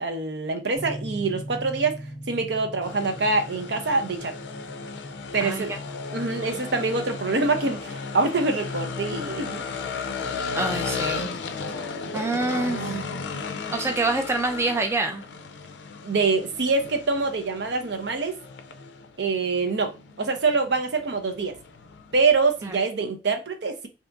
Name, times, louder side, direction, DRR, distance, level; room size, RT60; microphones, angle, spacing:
voice 1, 0.0-2.0 2.3-4.3 5.3-5.7 6.1-9.6 12.1-13.0 16.0-18.4 19.2-19.9 20.2-21.5 22.1-23.9, right 3 dB, 70° right, 0.7 m, -25 dB
sound 1, 0.7-9.5, equal, 15° left, 0.7 m, -41 dB
sound 2, 2.8-22.7, left 4 dB, 75° left, 0.4 m, -35 dB
voice 2, 5.4-5.8 10.6-11.3 12.1-13.0 13.7-15.2 22.6-22.8, right 2 dB, 15° right, 0.3 m, -26 dB
2.8 x 2.5 x 3.4 m
head